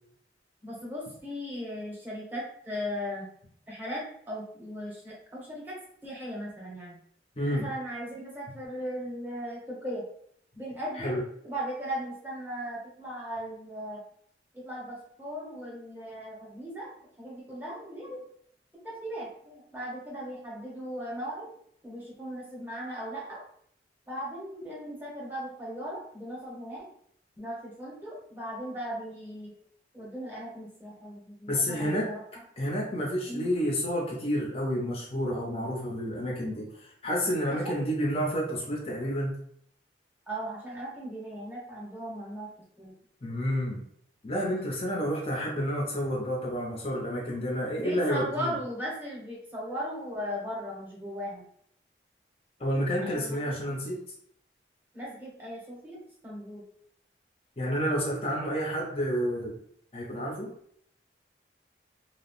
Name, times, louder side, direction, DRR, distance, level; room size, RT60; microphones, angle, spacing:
voice 1, 0.6-3.3 3.7-5.7 6.0-7.0 7.5-10.0 10.5-14.0 14.5-18.2 18.8-21.5 21.8-23.4 24.1-26.9 27.4-29.5 29.9-32.2 33.3-33.5 37.4-37.9 40.3-42.5 42.8-42.9 47.8-51.4 53.1-53.8 54.9-56.0 56.2-56.6, equal, 10° right, -5 dB, 0.8 m, -38 dB
voice 2, 7.4-7.7 10.9-11.2 31.5-32.1 32.6-39.3 43.2-43.8 44.2-48.6 52.6-54.0 57.6-59.6 59.9-60.5, equal, 35° left, -3 dB, 0.6 m, -30 dB
2.8 x 2.0 x 2.9 m, 0.66 s
head